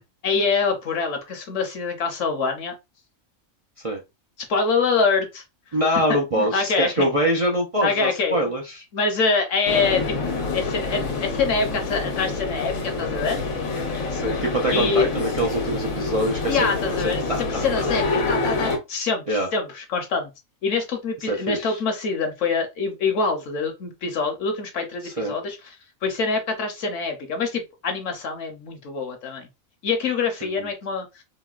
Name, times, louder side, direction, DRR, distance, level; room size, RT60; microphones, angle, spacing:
voice 1, 0.2-2.7 4.5-5.4 6.1-7.1 7.8-8.4 8.9-10.1 10.5-13.4 14.7-15.1 16.5-20.3 20.6-25.7 26.0-29.5 29.8-31.2, left 4 dB, 70° left, 1.1 m, -25 dB
voice 2, 5.7-8.8 14.1-16.7 17.0-17.9 19.3-19.5 21.3-21.8 25.0-25.4 30.6-30.7, right 1 dB, 55° right, 0.3 m, -24 dB
sound 1, 9.7-18.8, left 3 dB, 85° left, 1.3 m, -27 dB
3.8 x 2.2 x 2.4 m
omnidirectional pair, 1.4 m